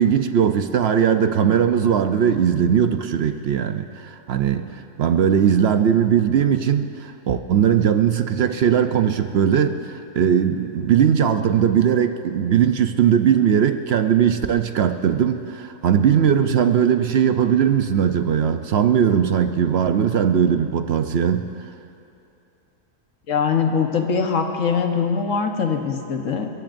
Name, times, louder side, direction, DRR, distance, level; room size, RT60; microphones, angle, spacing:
voice 1, 0.0-4.7 5.0-21.5, right 8 dB, 60° right, 8 dB, 0.7 m, -19 dB
voice 2, 23.3-26.5, left 6 dB, 60° left, 4 dB, 1.4 m, -22 dB
29.5 x 14.5 x 2.6 m, 2.7 s
omnidirectional pair, 1.6 m